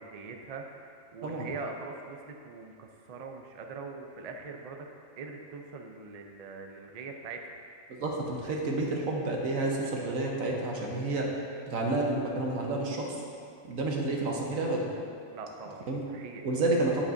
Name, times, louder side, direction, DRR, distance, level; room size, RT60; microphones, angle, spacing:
voice 1, 0.0-4.9 5.2-7.4 15.3-16.4, right 4 dB, 50° right, 3 dB, 0.5 m, -42 dB
voice 2, 8.0-11.3 11.7-13.1 13.6-14.8 15.9-16.0 16.4-17.1, right 2 dB, 85° right, -1 dB, 1.4 m, -30 dB
9.8 x 7.3 x 2.6 m, 2.4 s
omnidirectional pair, 1.4 m